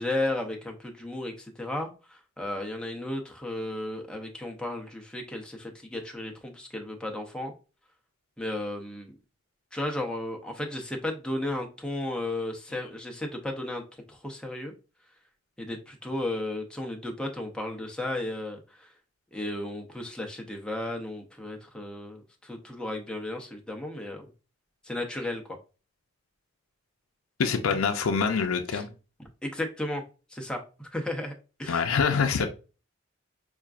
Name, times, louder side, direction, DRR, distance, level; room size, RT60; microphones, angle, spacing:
voice 1, 0.0-7.5 8.4-9.1 9.7-13.8 14.1-14.7 15.6-18.9 19.3-24.2 24.8-25.6 28.7-28.8 29.4-30.0 30.3-31.3 31.6-31.8 32.2-32.5, left 1 dB, 5° left, 0.6 m, -34 dB
voice 2, 27.4-28.9 31.7-32.5, left 5 dB, 90° left, 0.5 m, -25 dB
5.6 x 2.4 x 2.4 m
head